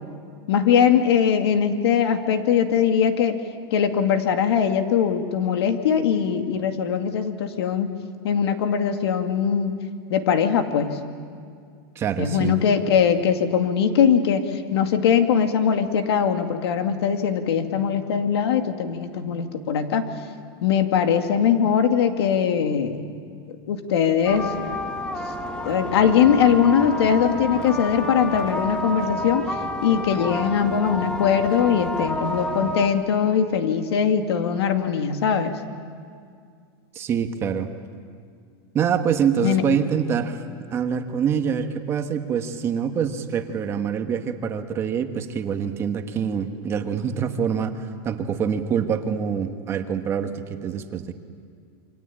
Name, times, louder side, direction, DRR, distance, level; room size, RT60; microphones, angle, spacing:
voice 1, 0.5-3.4 3.7-7.9 8.2-9.7 10.1-11.0 12.2-20.1 20.6-23.0 23.7-24.5 25.6-29.6 29.8-35.5 39.4-39.7, left 7 dB, 85° left, 6 dB, 2.4 m, -21 dB
voice 2, 11.9-12.6 36.9-37.7 38.7-40.4 40.7-51.1, right 7 dB, 20° right, 6 dB, 1.2 m, -25 dB
sound 1, 24.3-32.9, left 1 dB, 5° left, 1.4 m, -30 dB
28.0 x 24.5 x 8.7 m, 2.2 s
supercardioid pair, 170°, 13 cm